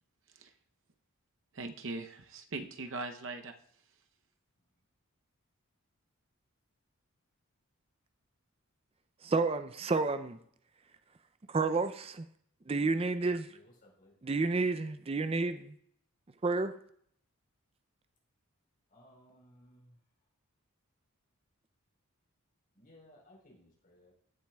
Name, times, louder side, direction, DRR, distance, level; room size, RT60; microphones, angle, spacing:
voice 1, 1.5-3.5, right 3 dB, 60° right, 6 dB, 0.7 m, -40 dB
voice 2, 9.2-10.4 11.5-12.2 12.7-13.5 14.2-15.7 16.4-16.7, right 3 dB, 25° right, 10 dB, 0.4 m, -30 dB
voice 3, 13.5-14.1 18.9-20.0 22.7-24.1, left 1 dB, 40° left, -1 dB, 4.0 m, -60 dB
16.0 x 7.4 x 2.3 m, 0.66 s
head